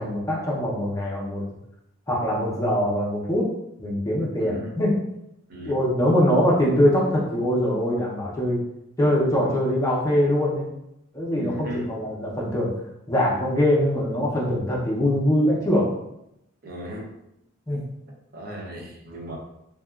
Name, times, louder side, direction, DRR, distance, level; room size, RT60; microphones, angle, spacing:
voice 1, 0.0-1.4 2.1-3.4 3.8-5.0 5.7-8.6 9.0-10.7 11.1-12.7 13.1-15.9 17.7-17.8, equal, 15° left, -5 dB, 0.5 m, -22 dB
voice 2, 4.4-4.8 5.5-5.9 11.3-11.9 16.6-17.1 18.3-19.4, right 1 dB, 45° right, -2 dB, 0.6 m, -36 dB
2.8 x 2.3 x 2.3 m, 0.83 s
head